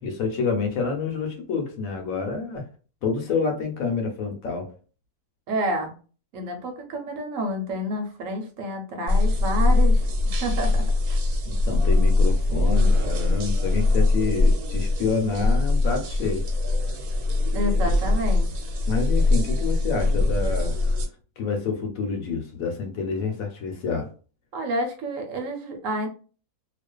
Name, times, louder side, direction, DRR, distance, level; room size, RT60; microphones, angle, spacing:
voice 1, 0.0-2.7 3.0-4.7 11.5-16.5 18.9-21.0 21.4-24.1, left 5 dB, 70° left, 3 dB, 1.0 m, -28 dB
voice 2, 5.5-5.9 6.3-11.2 17.5-18.5 24.5-26.1, right 1 dB, 65° right, 3 dB, 1.0 m, -29 dB
sound 1, 9.1-21.1, left 2 dB, 90° right, 1.2 m, -22 dB
2.4 x 2.4 x 2.2 m, 0.37 s
omnidirectional pair, 1.6 m